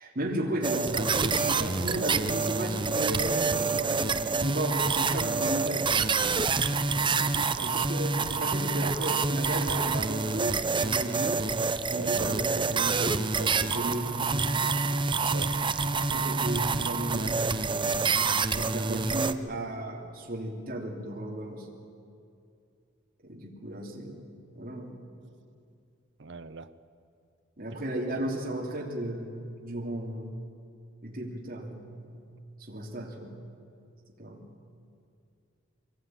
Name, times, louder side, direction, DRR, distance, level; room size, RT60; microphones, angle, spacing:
voice 1, 0.0-5.9 7.6-11.5 11.9-13.2 13.7-14.6 15.9-17.8 18.5-21.7 23.2-24.3 24.5-25.0 27.6-29.3 29.6-30.4 31.0-32.2 32.7-33.3 34.2-34.4, right 1 dB, 45° right, -3 dB, 3.2 m, -34 dB
sound 1, 0.6-19.3, right 4 dB, 25° right, 0.7 m, -27 dB
voice 2, 7.0-7.7 11.9-12.1 13.4-13.9 15.3-15.5 26.2-26.7, right 4 dB, 65° right, 10 dB, 0.8 m, -40 dB
24.5 x 19.0 x 9.2 m, 2.5 s
head